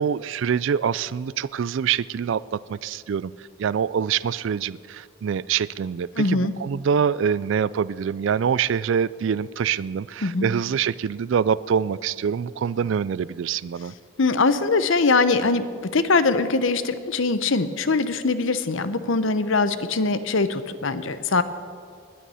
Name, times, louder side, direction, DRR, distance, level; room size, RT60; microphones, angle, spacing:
voice 1, 0.0-3.3 3.6-13.9, right 7 dB, 60° right, 19 dB, 0.3 m, -25 dB
voice 2, 6.2-6.5 10.2-10.5 14.2-15.6 15.9-21.4, left 3 dB, 60° left, 13 dB, 0.7 m, -22 dB
19.5 x 11.0 x 5.6 m, 2.2 s
head